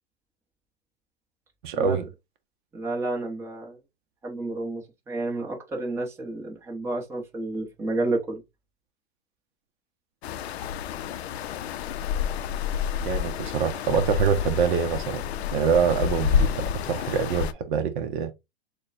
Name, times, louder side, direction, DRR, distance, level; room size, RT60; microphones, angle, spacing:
voice 1, 1.6-2.0 13.0-15.2 15.5-18.3, right 6 dB, 50° right, 0.6 m, -25 dB
voice 2, 2.7-3.8 4.2-8.4, right 2 dB, 10° right, 0.8 m, -30 dB
sound 1, 10.2-17.5, left 8 dB, 75° left, 0.5 m, -29 dB
6.5 x 2.2 x 2.5 m
supercardioid pair, 150°, 32 cm